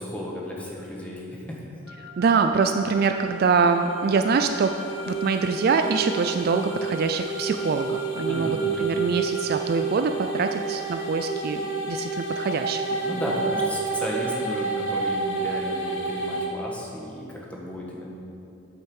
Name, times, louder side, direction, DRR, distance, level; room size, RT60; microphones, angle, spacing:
voice 1, 0.0-1.6 8.3-8.9 13.0-18.1, equal, 5° left, -3 dB, 1.3 m, -34 dB
Wind instrument woodwind instrument, 1.9-9.6, left 3 dB, 75° left, 0.7 m, -41 dB
voice 2, 2.2-4.8 5.1-11.6 11.9-12.8, right 5 dB, 45° right, 6 dB, 0.3 m, -24 dB
sound 1, 3.1-16.5, right 4 dB, 60° left, 1.4 m, -30 dB
8.9 x 6.4 x 6.4 m, 2.8 s
head